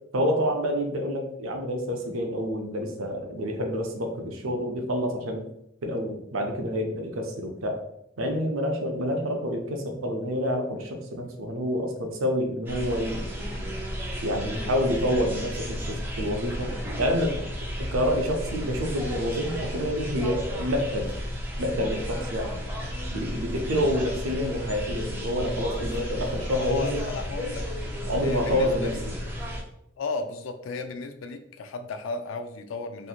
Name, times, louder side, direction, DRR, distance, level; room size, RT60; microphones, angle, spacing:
voice 1, 0.1-5.5 5.8-7.8 8.2-13.2 14.2-16.7 17.0-17.4 17.8-21.1 21.6-22.6 23.1-27.1 28.1-28.9, equal, 80° right, 3 dB, 0.6 m, -28 dB
sound 1, 12.7-29.6, equal, 10° right, 0.4 m, -33 dB
voice 2, 26.5-29.0 30.0-33.1, left 3 dB, 75° left, 8 dB, 0.3 m, -35 dB
2.9 x 2.6 x 2.3 m, 0.79 s
head